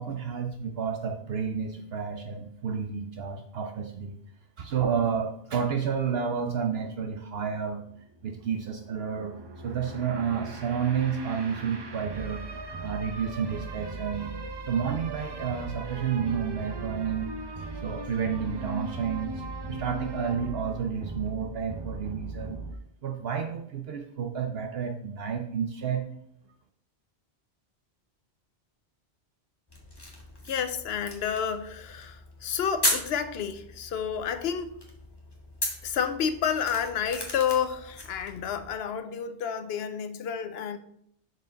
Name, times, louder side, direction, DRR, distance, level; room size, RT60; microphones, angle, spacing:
voice 1, 0.0-4.2 4.6-7.8 8.2-9.4 9.6-12.4 12.8-14.3 14.7-17.3 17.8-22.6 23.0-26.0, right 7 dB, 65° right, 0.8 m, -30 dB
sound 1, 7.8-22.7, right 2 dB, 30° right, 0.5 m, -39 dB
sound 2, 29.7-38.8, left 1 dB, 20° left, 1.4 m, -36 dB
voice 2, 30.4-34.8 35.8-40.8, left 7 dB, 65° left, 0.9 m, -30 dB
6.3 x 4.7 x 5.1 m
omnidirectional pair, 1.1 m